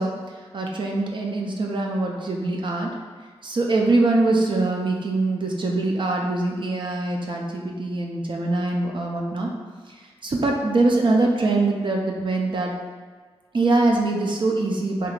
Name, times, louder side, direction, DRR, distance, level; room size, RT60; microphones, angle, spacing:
voice 1, 0.0-2.9 3.4-9.5 9.9-12.7 13.5-15.1, right 2 dB, 50° right, -1 dB, 0.5 m, -23 dB
3.5 x 2.8 x 2.4 m, 1.5 s
cardioid pair, 60°, 11 cm